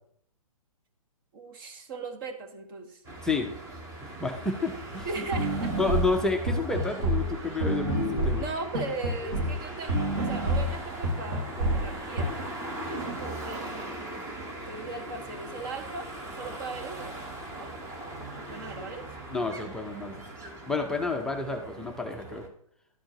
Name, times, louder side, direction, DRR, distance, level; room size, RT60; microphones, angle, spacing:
voice 1, 1.3-3.0 5.0-5.7 8.4-12.5 12.8-13.6 14.6-17.2 17.5-17.8 18.4-19.1, right 3 dB, 40° right, 5 dB, 1.4 m, -38 dB
sound 1, 3.0-22.5, right 1 dB, 15° right, 1.2 m, -40 dB
voice 2, 4.0-5.2 5.8-8.4 19.3-20.1 20.7-22.4, left 3 dB, 5° left, 3 dB, 0.5 m, -30 dB
sound 2, 5.0-5.1 5.3-9.6 9.9-12.2, right 1 dB, 55° right, 2.3 m, -28 dB
12.0 x 4.4 x 2.9 m, 0.66 s
figure-of-eight pair, 130°, 18 cm